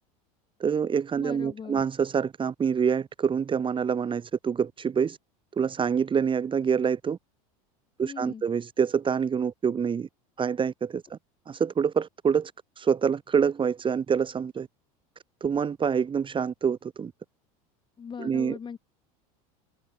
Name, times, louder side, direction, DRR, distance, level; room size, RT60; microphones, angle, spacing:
voice 1, 0.6-5.2 5.6-7.2 8.0-10.1 10.4-11.2 11.5-12.5 12.8-14.7 15.4-17.1 18.2-18.6, right 6 dB, 25° right, 2.0 m, -26 dB
voice 2, 1.2-1.8 8.0-8.4 18.0-18.8, left 6 dB, 25° left, 2.3 m, -39 dB
hypercardioid pair, 100°, 19 cm